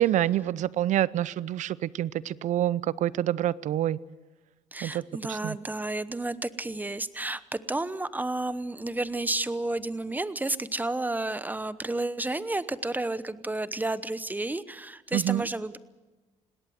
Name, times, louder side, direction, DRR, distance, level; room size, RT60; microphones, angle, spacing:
voice 1, 0.0-4.0 4.8-5.0 5.3-5.6 15.1-15.4, right 13 dB, 70° right, 21 dB, 0.6 m, -27 dB
voice 2, 4.7-15.8, right 2 dB, 15° right, 16 dB, 0.9 m, -31 dB
20.5 x 17.5 x 7.8 m, 1.2 s
cardioid pair, 80°, 13 cm